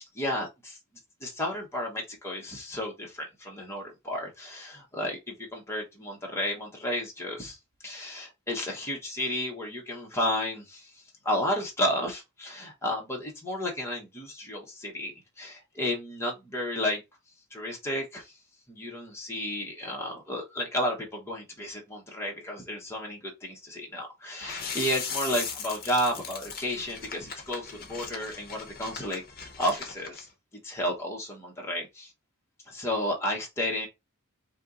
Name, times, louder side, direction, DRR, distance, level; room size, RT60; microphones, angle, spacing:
voice 1, 0.1-0.8 1.2-7.6 7.8-17.0 17.5-18.3 18.7-30.3 30.6-32.1 32.7-33.9, left 1 dB, 10° left, 1.1 m, -32 dB
sound 1, 24.4-30.2, left 6 dB, 40° left, 0.9 m, -38 dB
4.3 x 2.9 x 3.8 m
head